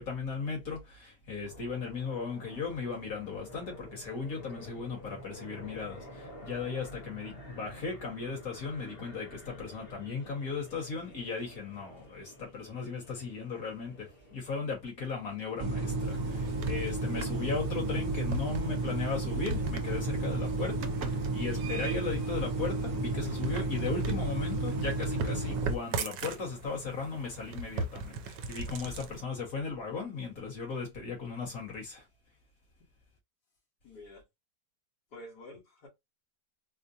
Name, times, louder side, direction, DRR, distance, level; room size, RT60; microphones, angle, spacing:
voice 1, 0.0-32.1, left 4 dB, 55° left, 2.1 m, -37 dB
sound 1, 1.4-14.6, left 1 dB, 40° left, 1.4 m, -50 dB
sound 2, 15.6-25.8, right 2 dB, 55° right, 1.2 m, -32 dB
sound 3, 16.0-29.2, right 3 dB, 85° right, 1.2 m, -40 dB
voice 2, 33.8-34.2 35.1-35.9, left 1 dB, 75° left, 2.3 m, -48 dB
4.3 x 2.2 x 2.7 m
omnidirectional pair, 1.8 m